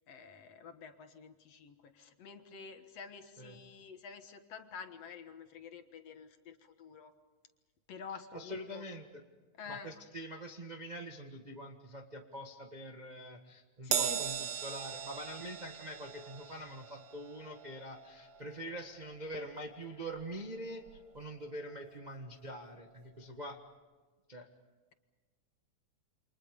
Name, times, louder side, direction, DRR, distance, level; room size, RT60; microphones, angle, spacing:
voice 1, 0.1-7.1 7.9-8.8 9.6-9.9 13.8-14.2, left 6 dB, 60° left, 7 dB, 2.4 m, -49 dB
voice 2, 8.3-9.2 9.7-23.6 24.3-24.5, right 1 dB, 25° right, 3 dB, 0.8 m, -45 dB
Crash cymbal, 13.9-20.5 20.9-21.1 22.1-22.2, right 8 dB, 55° right, 1.5 m, -40 dB
29.0 x 26.0 x 5.3 m, 1.3 s
omnidirectional pair, 3.4 m